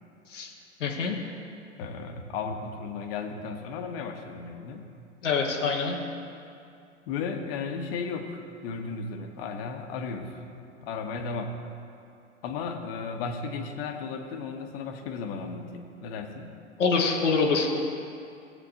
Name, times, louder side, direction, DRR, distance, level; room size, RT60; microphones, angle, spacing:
voice 1, 0.8-1.2 5.2-6.0 16.8-17.8, left 4 dB, 75° left, 0 dB, 1.4 m, -25 dB
voice 2, 1.8-4.8 7.1-10.3 10.8-11.6 12.4-16.5, left 5 dB, 55° left, 5 dB, 1.2 m, -35 dB
17.5 x 7.9 x 2.6 m, 2.5 s
figure-of-eight pair, 95°, 37 cm